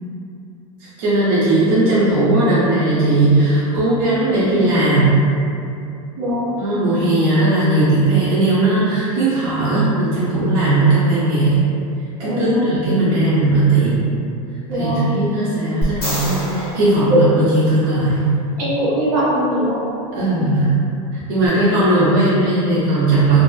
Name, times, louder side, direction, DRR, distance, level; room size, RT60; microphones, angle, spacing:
voice 1, 0.8-5.2 6.6-11.6 12.2-14.0 14.7-18.3 20.2-20.7 21.1-23.4, right 2 dB, 45° right, -10 dB, 0.5 m, -17 dB
voice 2, 6.2-6.5 12.2-12.7 14.7-15.1 17.1-17.2 18.6-19.8 20.1-20.4, equal, 80° right, -9 dB, 1.3 m, -20 dB
sound 1, 15.8-18.1 21.5-21.6, equal, 25° left, 1.2 m, -27 dB
2.5 x 2.3 x 2.2 m, 2.6 s
supercardioid pair, 180°, 18 cm